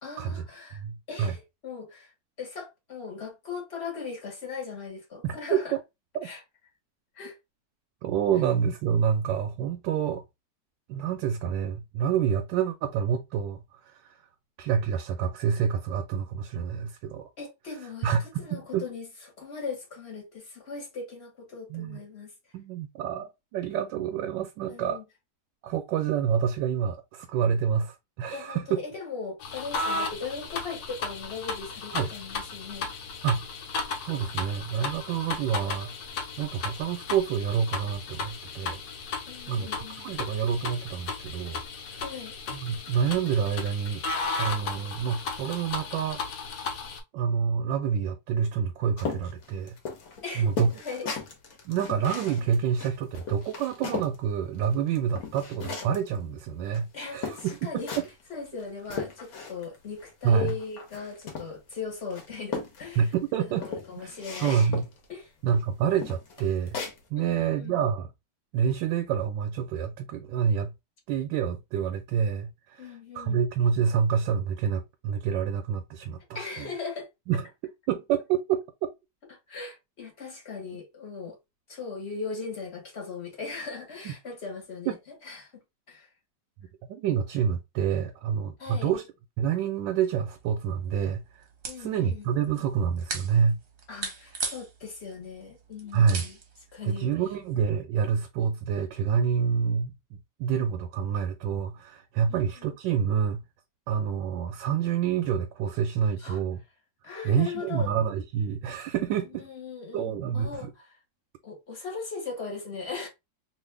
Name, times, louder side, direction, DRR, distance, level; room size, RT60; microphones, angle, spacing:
voice 1, 0.0-0.8 1.1-2.1 2.4-5.7 6.2-6.4 7.1-7.4 17.4-19.1 19.4-22.3 24.7-25.0 28.3-33.1 39.3-40.0 42.0-42.4 50.2-50.5 50.8-51.1 56.9-57.9 58.3-63.1 63.5-64.7 65.1-65.3 67.2-67.8 72.8-73.4 76.3-77.1 79.3-81.4 81.7-85.0 85.2-85.6 85.9-86.1 88.6-88.9 91.7-92.3 93.9-96.4 96.7-97.1 102.3-102.7 106.2-106.4 107.0-107.9 109.4-111.0 111.4-113.1, left 5 dB, 40° left, 1.3 m, -39 dB
voice 2, 0.8-1.3 5.2-5.6 6.1-6.3 8.0-10.2 10.9-13.9 14.6-17.3 18.0-18.8 21.7-22.0 22.5-25.0 25.6-28.8 31.9-32.1 33.2-33.4 34.1-35.9 36.4-38.8 39.5-41.6 41.9-42.0 42.5-44.0 44.4-46.2 47.1-49.8 50.4-50.7 51.6-57.8 60.2-60.5 63.0-63.6 63.9-64.1 64.4-64.8 65.4-66.8 67.1-68.1 68.5-70.7 71.1-76.2 76.6-76.7 77.3-77.4 77.9-78.6 84.0-84.1 84.9-85.0 86.9-89.0 89.4-91.2 91.8-93.6 95.9-96.3 96.8-99.9 100.4-103.4 103.9-106.6 107.2-109.5 109.9-110.7, right 7 dB, 90° right, 1.3 m, -27 dB
sound 1, 29.4-47.0, left 4 dB, 80° left, 1.4 m, -35 dB
sound 2, 49.0-54.2 54.6-56.1 56.7-56.8 57.2-58.2 58.6-59.8 60.0-61.7 62.1-63.1 63.6-65.0 65.5-65.6 66.0-67.0, left 5 dB, 60° left, 1.3 m, -37 dB
sound 3, 90.3-97.6, right 4 dB, 50° right, 0.9 m, -40 dB
3.1 x 2.5 x 3.3 m
omnidirectional pair, 2.0 m